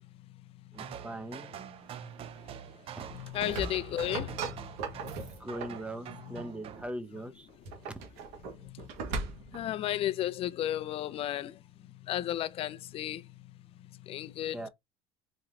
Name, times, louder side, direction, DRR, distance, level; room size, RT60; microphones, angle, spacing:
voice 1, 0.7-1.5 2.9-3.0 5.4-7.5 7.9-8.0 14.5-14.7, right 1 dB, 10° right, 0.8 m, -40 dB
sound 1, 0.7-6.9, right 9 dB, 40° right, 0.6 m, -45 dB
voice 2, 3.1-4.7 5.0-5.3 8.6-8.9 9.5-11.6 12.1-13.3 14.0-14.7, left 12 dB, 40° left, 0.4 m, -34 dB
sound 2, 3.1-5.9 7.5-9.7, right 3 dB, 80° right, 1.7 m, -39 dB
4.4 x 3.1 x 3.7 m
cardioid pair, 130°, 15 cm